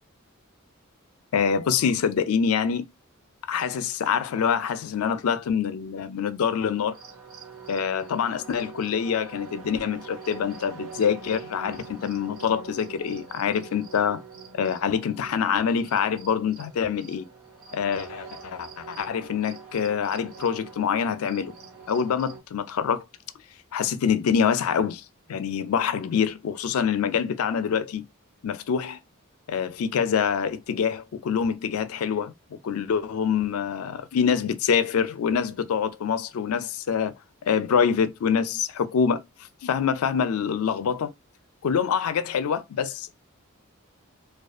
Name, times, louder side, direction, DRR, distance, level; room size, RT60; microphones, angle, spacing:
voice 1, 1.3-2.9 3.5-7.0 7.7-14.2 14.5-17.3 17.7-21.5 21.9-23.0 23.7-28.0 28.4-29.0 29.5-37.1 37.5-39.2 39.6-41.1 41.6-43.1, left 7 dB, 85° left, 0.4 m, -25 dB
sound 1, 6.9-22.4, right 5 dB, 75° right, 0.8 m, -44 dB
2.4 x 2.3 x 2.3 m
head